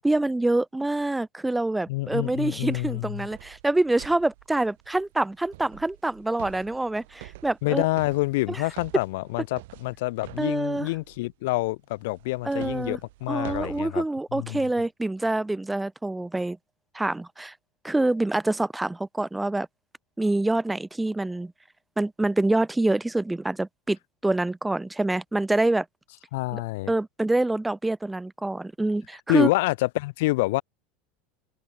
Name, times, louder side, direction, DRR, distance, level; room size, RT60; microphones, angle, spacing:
voice 1, 0.0-7.9 8.5-8.6 10.4-10.9 12.4-13.0 13.3-16.6 16.9-17.5 17.8-19.7 20.2-21.5 22.0-25.8 26.5-26.6 26.9-29.5, right 2 dB, 5° right, 1.3 m, -26 dB
voice 2, 1.9-3.3 7.6-14.0 14.3-14.7 26.3-26.9 29.3-30.6, left 21 dB, 75° left, 3.7 m, -27 dB
sound 1, 2.7-11.3 11.9-13.8, right 19 dB, 80° right, 7.3 m, -47 dB
supercardioid pair, 135°, 0 cm